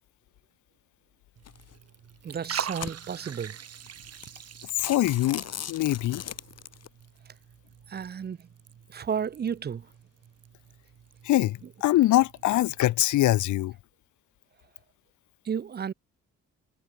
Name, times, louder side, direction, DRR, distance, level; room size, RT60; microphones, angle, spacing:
Liquid, 1.4-12.8, right 8 dB, 55° right, 4.9 m, -44 dB
sound 1, 1.5-1.7 2.3-3.3 3.9-4.0 4.2-4.4 4.7-6.9, left 9 dB, 55° left, 2.9 m, -38 dB
voice 1, 2.2-3.6 7.9-8.5 8.9-9.9 15.4-15.9, right 7 dB, 35° right, 0.7 m, -32 dB
voice 2, 4.8-6.2 11.2-13.7, left 15 dB, 75° left, 0.9 m, -23 dB
cardioid pair, 90°, 30 cm